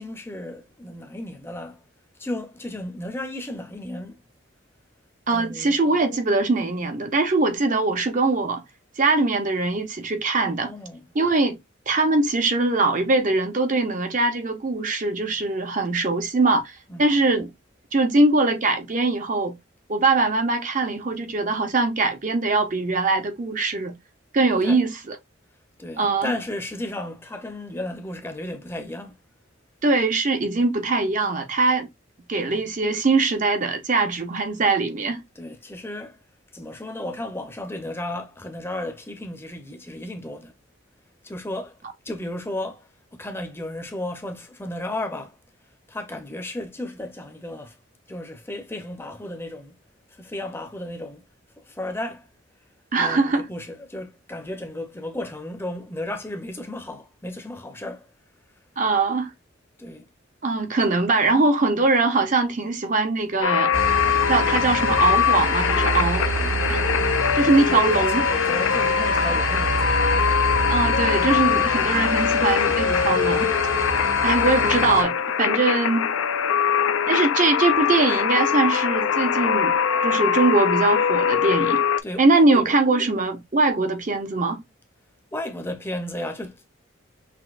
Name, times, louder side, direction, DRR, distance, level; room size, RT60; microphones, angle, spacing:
voice 1, 0.0-1.8 2.2-4.2 5.3-5.8 10.6-11.0 16.9-17.2 24.6-24.8 25.8-29.2 35.4-36.2 36.5-40.5 41.2-41.8 42.0-45.4 45.9-47.8 48.1-49.7 50.1-51.2 51.6-52.3 53.0-58.1 59.8-60.0 66.2-66.9 67.7-70.0 82.0-82.6 85.3-86.7, left 1 dB, 10° left, 0.6 m, -34 dB
voice 2, 5.3-8.6 9.0-10.7 11.1-11.6 11.9-17.5 17.9-19.5 19.9-23.9 24.3-25.2 26.0-26.3 29.8-31.9 32.3-35.2 52.9-53.4 58.8-59.3 60.4-63.7 64.3-66.3 66.7-66.8 67.4-68.3 70.7-73.5 74.2-76.1 77.1-79.8 80.0-81.8 82.2-84.6, right 3 dB, 40° right, 0.6 m, -22 dB
sound 1, 63.4-82.0, left 7 dB, 85° left, 0.4 m, -22 dB
sound 2, 63.7-75.0, right 2 dB, 85° right, 1.8 m, -28 dB
5.9 x 2.7 x 2.4 m
head